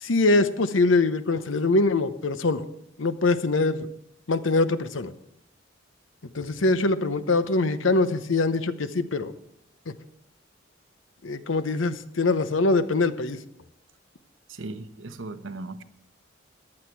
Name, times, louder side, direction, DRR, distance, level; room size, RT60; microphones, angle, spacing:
voice 1, 0.0-2.6 3.0-3.9 4.3-5.1 6.3-9.3 11.2-13.4, left 3 dB, 80° left, 12 dB, 0.8 m, -23 dB
voice 2, 14.5-15.8, right 2 dB, 80° right, 10 dB, 0.9 m, -37 dB
14.5 x 11.0 x 4.6 m, 0.81 s
head